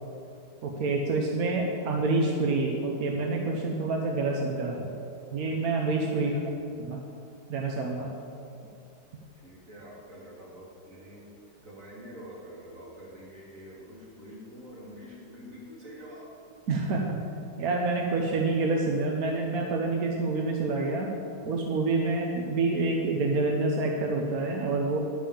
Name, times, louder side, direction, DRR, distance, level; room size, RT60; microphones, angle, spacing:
voice 1, 0.6-4.9 5.3-6.3 6.8-7.0 7.5-8.1 16.7-17.2 17.6-21.1 21.4-25.0, right 3 dB, 60° right, 0 dB, 1.1 m, -27 dB
voice 2, 6.1-6.5 9.4-16.3, equal, 40° right, -6 dB, 3.0 m, -46 dB
11.5 x 5.4 x 7.2 m, 2.6 s
omnidirectional pair, 2.2 m